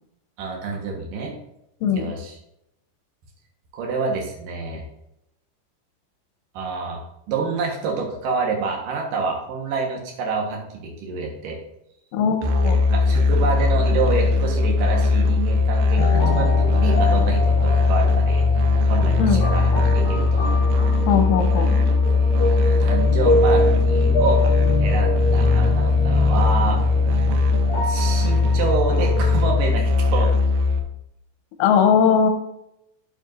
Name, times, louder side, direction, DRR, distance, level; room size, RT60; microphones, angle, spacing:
voice 1, 0.4-1.4 1.9-2.4 3.7-4.8 6.5-7.0 7.3-11.6 12.9-18.4 18.8-19.7 19.9-20.5 22.7-24.4 24.8-26.8 27.8-30.3, right 4 dB, 65° right, 0 dB, 2.3 m, -27 dB
voice 2, 1.8-2.1 12.1-12.8 19.2-19.4 21.1-21.8 31.6-32.3, left 7 dB, 90° left, 5 dB, 3.2 m, -19 dB
Musical instrument, 12.4-30.8, left 3 dB, 85° right, 2.3 m, -19 dB
sound 1, 16.0-29.5, left 1 dB, 70° left, 3.8 m, -26 dB
8.9 x 8.4 x 2.7 m, 0.79 s
omnidirectional pair, 5.6 m